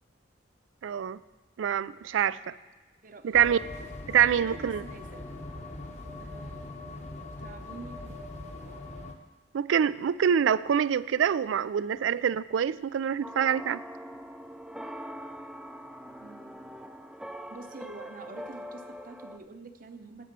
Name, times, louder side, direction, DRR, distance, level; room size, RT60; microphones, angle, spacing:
voice 1, 0.8-1.2 1.6-2.5 3.2-3.6 4.1-4.8 9.5-13.8, right 8 dB, 85° right, 18 dB, 0.3 m, -25 dB
voice 2, 3.0-3.4 4.3-5.3 6.2-6.7 7.4-8.2 11.4-11.9 16.2-16.6 17.5-20.3, right 3 dB, 45° right, 8 dB, 0.8 m, -47 dB
sound 1, 3.3-9.1, left 2 dB, 35° left, 1.0 m, -41 dB
sound 2, 13.2-19.4, equal, 5° right, 0.4 m, -43 dB
9.7 x 8.6 x 6.7 m, 1.2 s
head